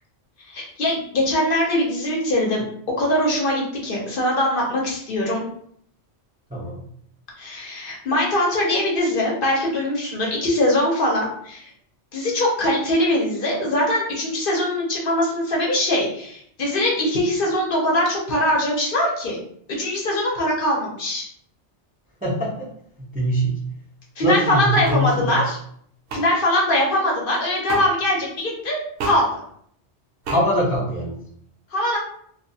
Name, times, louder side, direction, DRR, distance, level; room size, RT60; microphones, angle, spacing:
voice 1, 0.5-5.4 7.4-11.7 12.1-19.4 19.7-21.3 24.2-25.6 26.1-29.3 31.7-32.0, left 1 dB, 60° left, -2 dB, 0.7 m, -22 dB
voice 2, 6.5-6.8 22.2-22.7 23.0-23.6 24.2-25.4 30.3-31.2, equal, 15° right, -6 dB, 0.3 m, -23 dB
sound 1, 24.8-25.0 26.1-26.2 27.7-27.9 29.0-29.2 30.2-30.4, right 3 dB, 70° right, 0.8 m, -28 dB
2.3 x 2.2 x 2.6 m, 0.66 s
omnidirectional pair, 1.2 m